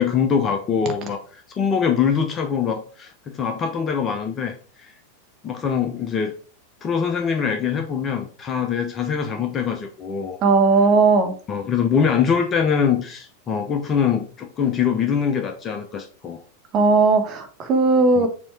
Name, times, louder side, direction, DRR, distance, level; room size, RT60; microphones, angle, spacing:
voice 1, 0.0-4.9 5.4-6.3 6.8-10.4 11.5-16.4 18.2-18.3, left 7 dB, 25° left, 6 dB, 0.7 m, -23 dB
voice 2, 10.4-11.3 16.7-18.3, right 4 dB, 35° right, 7 dB, 1.2 m, -17 dB
7.1 x 3.0 x 4.7 m, 0.43 s
figure-of-eight pair, 90°, 0 cm